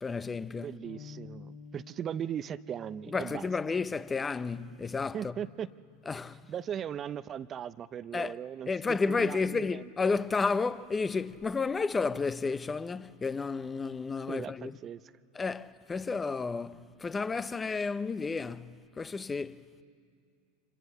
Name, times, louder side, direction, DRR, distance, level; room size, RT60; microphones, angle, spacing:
voice 1, 0.0-0.7 3.1-5.3 6.1-6.5 8.1-8.3 8.7-14.8 15.3-19.6, left 4 dB, 20° left, 0.8 m, -32 dB
voice 2, 0.6-3.5 5.1-5.7 6.5-9.9 14.3-15.1, right 9 dB, 35° right, 0.6 m, -38 dB
Bass guitar, 0.8-7.1, left 4 dB, 85° left, 1.5 m, -53 dB
26.5 x 24.0 x 7.1 m
hypercardioid pair, 95°, 0 cm